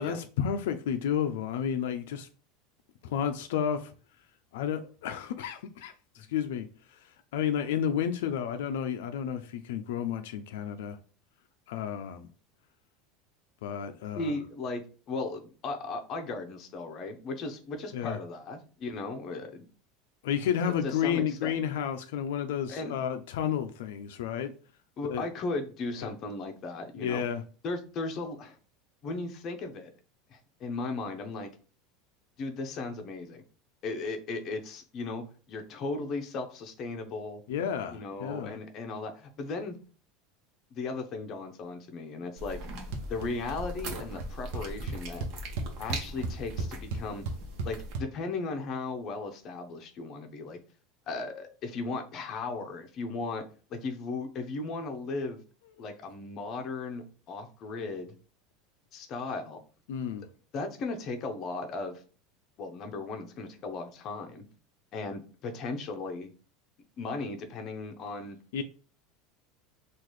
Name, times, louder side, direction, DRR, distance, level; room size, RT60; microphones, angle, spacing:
voice 1, 0.0-2.3 3.0-3.9 4.5-7.0 7.3-11.0 11.7-12.3 13.6-14.3 17.9-18.2 20.2-24.5 25.1-25.3 26.9-27.4 37.5-38.5 59.9-60.3 68.5-68.6, left 8 dB, 85° left, 0.4 m, -31 dB
voice 2, 14.1-14.8 15.1-19.6 20.8-21.7 22.7-22.9 25.0-27.2 27.6-28.6 29.0-29.9 30.3-31.5 32.4-33.4 33.8-37.4 37.9-39.8 40.7-42.6 43.1-45.3 45.8-47.3 47.6-50.6 51.1-53.4 53.7-55.4 55.8-58.1 58.9-59.6 60.5-62.0 62.6-64.4 64.9-66.3 67.0-68.4, left 3 dB, 40° left, 0.6 m, -36 dB
sound 1, 42.4-47.9, right 1 dB, 55° right, 1.0 m, -40 dB
sound 2, 42.9-43.3 43.6-44.0 44.2-44.3 44.5-48.0, right 3 dB, 75° right, 0.7 m, -34 dB
3.8 x 2.4 x 3.1 m
supercardioid pair, 145°, 0 cm